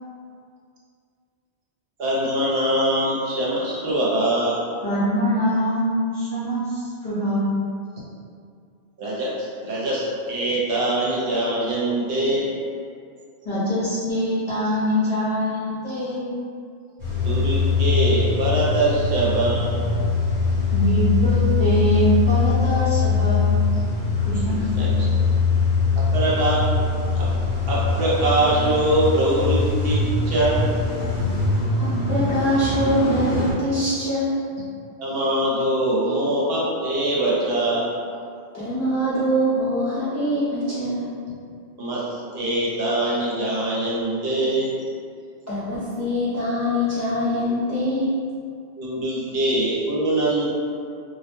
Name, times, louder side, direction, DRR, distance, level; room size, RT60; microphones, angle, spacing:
voice 1, 2.0-4.6 9.0-9.3 9.6-12.5 17.2-19.7 24.8-25.0 26.1-26.6 27.2-27.3 27.7-30.6 35.0-37.9 41.8-42.0 42.3-44.7 48.8-50.5, right 1 dB, 65° right, -6 dB, 0.8 m, -23 dB
voice 2, 4.8-7.5 13.4-16.3 20.7-23.6 24.3-25.0, equal, 50° left, -13 dB, 0.8 m, -23 dB
Car / Engine starting / Idling, 17.0-33.5, left 4 dB, 20° right, 0.8 m, -22 dB
voice 3, 31.3-34.3 38.5-41.1 45.5-48.1, equal, 25° left, -14 dB, 0.4 m, -24 dB
2.2 x 2.1 x 2.9 m, 2.3 s
omnidirectional pair, 1.1 m